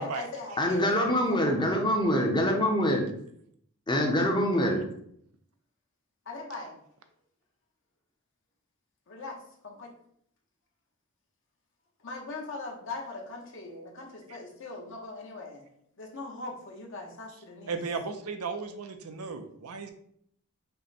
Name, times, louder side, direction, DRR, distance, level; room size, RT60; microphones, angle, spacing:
voice 1, 0.0-1.5 4.6-4.7 6.2-6.8 9.1-9.4 9.6-9.9 12.0-17.8, left 2 dB, 60° left, 0 dB, 1.0 m, -41 dB
voice 2, 0.6-3.0 3.9-4.8, equal, 20° left, 2 dB, 0.7 m, -25 dB
voice 3, 17.7-19.9, right 4 dB, 85° right, 7 dB, 0.6 m, -35 dB
5.3 x 2.2 x 4.2 m, 0.67 s
head